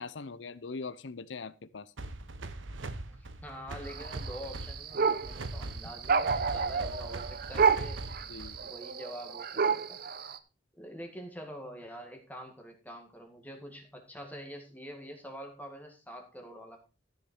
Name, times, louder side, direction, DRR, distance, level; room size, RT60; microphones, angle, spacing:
voice 1, 0.0-1.9 8.3-8.6, left 4 dB, 70° left, 0.7 m, -41 dB
sound 1, 2.0-8.7, right 2 dB, 85° right, 1.1 m, -41 dB
voice 2, 3.1-8.1 8.6-10.0 10.8-16.8, equal, 10° left, 2.0 m, -46 dB
sound 2, 3.8-10.4, right 5 dB, 50° right, 0.8 m, -30 dB
13.5 x 6.6 x 4.4 m
head